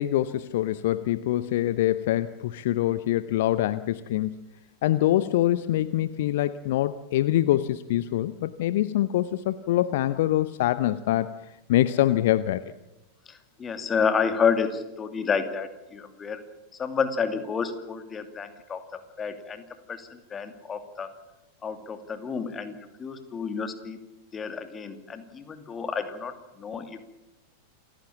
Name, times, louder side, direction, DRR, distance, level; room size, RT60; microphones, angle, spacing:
voice 1, 0.0-4.5 4.8-11.3 11.7-12.6, left 14 dB, 55° left, 15 dB, 0.7 m, -24 dB
voice 2, 13.3-16.4 16.8-21.1 21.6-24.0 24.3-27.1, left 6 dB, 20° left, 8 dB, 2.5 m, -30 dB
28.0 x 15.5 x 7.4 m, 1.0 s
figure-of-eight pair, 90°, 0 cm